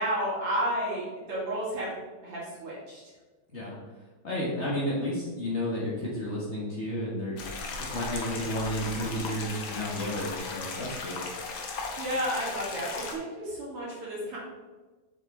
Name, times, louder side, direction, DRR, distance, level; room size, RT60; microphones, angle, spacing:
voice 1, 0.0-1.9 2.2-3.0 12.0-14.4, equal, 50° right, -6 dB, 2.8 m, -31 dB
voice 2, 4.2-7.4 7.8-11.2, equal, 80° left, -5 dB, 0.6 m, -32 dB
sound 1, 7.4-13.1, left 4 dB, 65° left, 1.3 m, -37 dB
6.9 x 6.2 x 3.7 m, 1.3 s
omnidirectional pair, 3.5 m